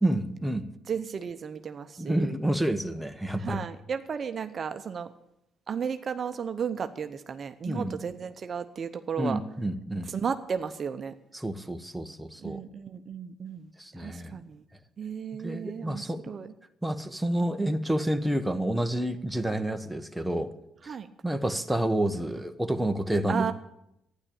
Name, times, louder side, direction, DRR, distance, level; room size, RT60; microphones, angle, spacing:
voice 1, 0.0-0.7 2.0-3.6 7.6-7.9 9.2-10.1 11.3-12.6 13.8-14.4 15.4-16.2 16.8-20.5 20.8-21.0 21.2-23.4, right 1 dB, 5° right, 6 dB, 1.1 m, -29 dB
voice 2, 0.9-2.4 3.4-5.1 5.7-9.4 10.1-11.1 12.4-13.7 14.0-14.6 15.0-16.5 20.9-21.1 23.3-23.5, right 6 dB, 45° right, 9 dB, 0.8 m, -34 dB
12.0 x 10.0 x 8.7 m, 0.83 s
cardioid pair, 90°, 0 cm